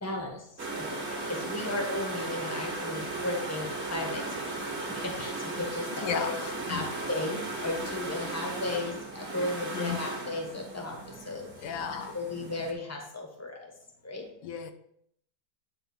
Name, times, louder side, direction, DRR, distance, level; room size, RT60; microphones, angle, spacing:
voice 1, 0.0-4.5 4.8-6.4 6.7-11.8 12.1-13.7 14.0-14.3, left 2 dB, 10° left, 1 dB, 1.3 m, -35 dB
sound 1, 0.6-12.7, right 2 dB, 40° right, 1.9 m, -36 dB
voice 2, 5.9-6.8 9.4-10.0 11.6-12.2 14.4-14.7, left 7 dB, 85° left, 8 dB, 1.4 m, -35 dB
10.0 x 3.6 x 5.3 m, 0.72 s
omnidirectional pair, 1.9 m